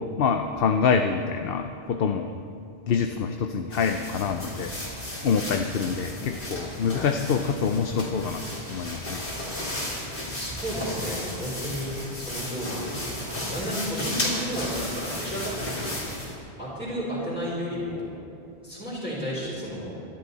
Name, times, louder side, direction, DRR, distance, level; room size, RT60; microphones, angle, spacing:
voice 1, 0.0-2.3 2.9-4.7 5.2-9.2, left 6 dB, 65° left, 6 dB, 0.9 m, -26 dB
sound 1, 3.7-16.4, left 1 dB, 80° left, 3.6 m, -34 dB
voice 2, 10.3-13.1 13.5-16.0 16.6-18.2 18.6-19.9, equal, 5° right, -9 dB, 4.3 m, -32 dB
24.5 x 12.0 x 4.1 m, 2.7 s
omnidirectional pair, 1.1 m